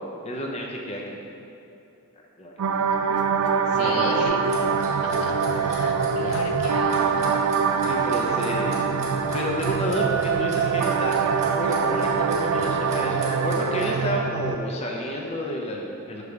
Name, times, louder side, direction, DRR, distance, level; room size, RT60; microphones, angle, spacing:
voice 1, 0.2-1.3 2.4-2.5 3.8-4.2 7.9-8.7 9.3-16.2, left 1 dB, 30° left, -1 dB, 0.6 m, -30 dB
sound 1, 2.6-14.6, right 6 dB, 85° right, 0.3 m, -24 dB
voice 2, 3.7-4.4 5.0-8.1, left 4 dB, 85° left, 3 dB, 0.5 m, -36 dB
Clock, 4.2-13.9, right 2 dB, 30° right, 1.3 m, -39 dB
6.8 x 3.3 x 4.7 m, 2.9 s
head